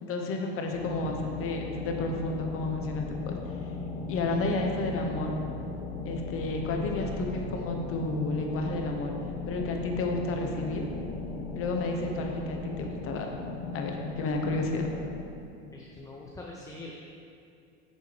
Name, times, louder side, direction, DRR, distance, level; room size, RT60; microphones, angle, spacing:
voice 1, 0.0-3.4 4.1-5.4 6.0-9.1 9.4-10.9 11.5-13.3 13.7-14.9, left 2 dB, 45° left, 2 dB, 1.0 m, -31 dB
sound 1, 0.7-15.2, left 3 dB, 80° left, 1.0 m, -37 dB
voice 2, 15.7-16.9, left 2 dB, 10° left, -2 dB, 0.6 m, -43 dB
8.3 x 6.6 x 3.3 m, 2.5 s
supercardioid pair, 125°, 32 cm